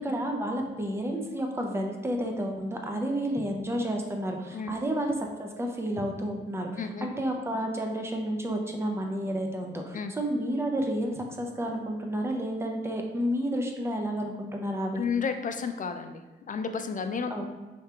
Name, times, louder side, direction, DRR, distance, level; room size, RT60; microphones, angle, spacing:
voice 1, 0.0-6.7 7.0-15.1 17.3-17.4, equal, 10° right, 2 dB, 0.6 m, -31 dB
voice 2, 6.8-7.1 9.9-10.1 14.9-17.4, left 5 dB, 40° left, 7 dB, 0.4 m, -32 dB
4.7 x 3.4 x 2.9 m, 1.1 s
cardioid pair, 110°, 21 cm